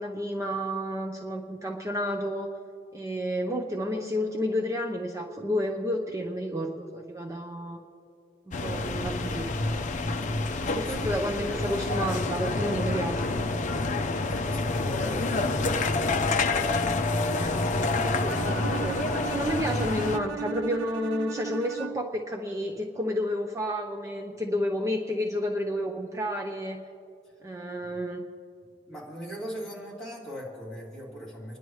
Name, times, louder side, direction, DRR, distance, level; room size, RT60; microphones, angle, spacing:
voice 1, 0.0-2.5 2.9-7.8 8.5-9.9 10.6-13.3 17.3-26.8 27.4-28.2, equal, 15° right, 1 dB, 0.6 m, -31 dB
sound 1, 8.5-20.2, left 3 dB, 40° left, 0.6 m, -28 dB
voice 2, 10.1-11.9 13.7-16.7 27.9-28.0 28.9-31.6, equal, 5° left, -7 dB, 2.7 m, -40 dB
Bowed string instrument, 18.3-22.2, right 9 dB, 75° right, 0.4 m, -37 dB
29.5 x 11.0 x 3.1 m, 2.4 s
head